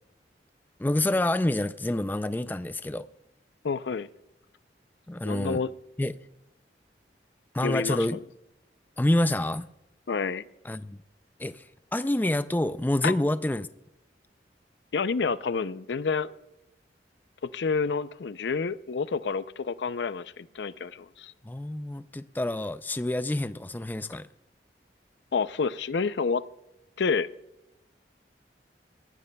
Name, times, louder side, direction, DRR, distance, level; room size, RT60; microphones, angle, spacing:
voice 1, 0.8-3.1 5.1-5.6 6.0-6.1 7.5-8.2 9.0-9.7 10.6-11.0 11.4-11.6 11.9-13.7 21.4-24.3, left 1 dB, 10° left, 0.3 m, -27 dB
voice 2, 3.6-4.1 5.2-5.7 7.6-8.2 10.1-10.4 13.0-13.1 14.9-16.3 17.4-21.3 25.3-26.4 27.0-27.3, left 5 dB, 75° left, 0.5 m, -29 dB
21.5 x 15.0 x 2.3 m
head